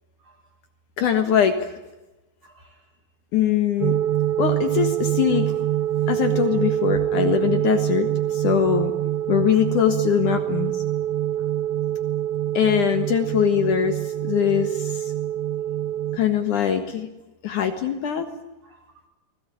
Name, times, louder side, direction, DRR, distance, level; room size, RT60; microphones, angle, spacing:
voice 1, 0.2-0.5 2.4-3.0 9.8-9.9 11.4-11.5 12.6-12.8 18.6-19.1, right 1 dB, 40° right, 2 dB, 9.0 m, -57 dB
voice 2, 1.0-1.7 3.3-4.0 4.4-5.5 6.1-8.9 9.3-10.8 12.5-15.1 16.1-17.1 17.4-18.3, left 8 dB, 60° left, 7 dB, 2.8 m, -22 dB
sound 1, 3.8-16.2, right 12 dB, 65° right, 1.5 m, -25 dB
28.5 x 21.0 x 9.2 m, 1.0 s
omnidirectional pair, 4.3 m